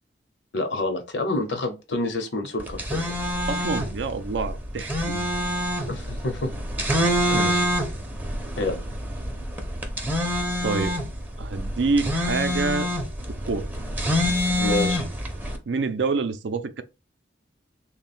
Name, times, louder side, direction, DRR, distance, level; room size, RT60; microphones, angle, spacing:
voice 1, 0.5-3.2 5.9-6.5 7.3-7.5 8.6-8.8 14.6-15.1, left 2 dB, 80° left, 0.9 m, -28 dB
sound 1, 2.6-15.6, equal, 10° right, 0.5 m, -26 dB
voice 2, 3.5-5.3 7.3-7.7 10.6-11.0 11.4-12.9 13.5-13.7 15.7-16.8, right 4 dB, 80° right, 0.4 m, -27 dB
3.4 x 2.2 x 4.2 m
head